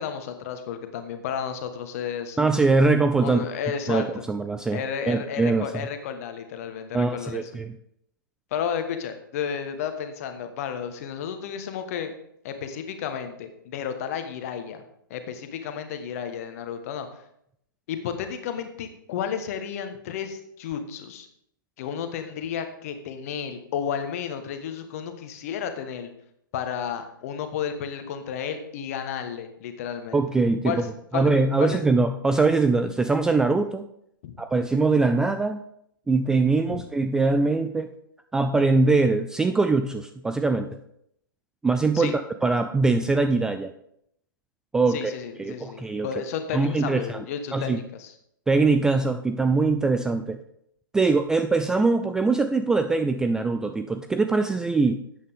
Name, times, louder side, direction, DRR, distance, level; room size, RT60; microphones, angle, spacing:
voice 1, 0.0-2.4 3.2-4.2 4.7-7.4 8.5-12.1 12.4-14.8 15.1-17.2 17.9-21.3 21.8-26.1 26.5-30.2 30.6-30.9 31.1-31.3 31.6-31.8 34.2-34.3 36.7-36.8 41.9-42.1 44.9-48.1, left 8 dB, 40° left, 8 dB, 1.3 m, -32 dB
voice 2, 2.4-3.4 3.9-5.9 6.9-7.8 30.1-30.7 31.1-33.8 34.4-35.6 36.1-37.9 38.3-40.7 41.6-43.7 44.7-46.1 46.5-47.2 47.5-47.8 48.5-50.4 50.9-55.0, right 3 dB, 5° right, 7 dB, 0.3 m, -22 dB
12.5 x 8.7 x 3.6 m, 0.73 s
figure-of-eight pair, 115°, 12 cm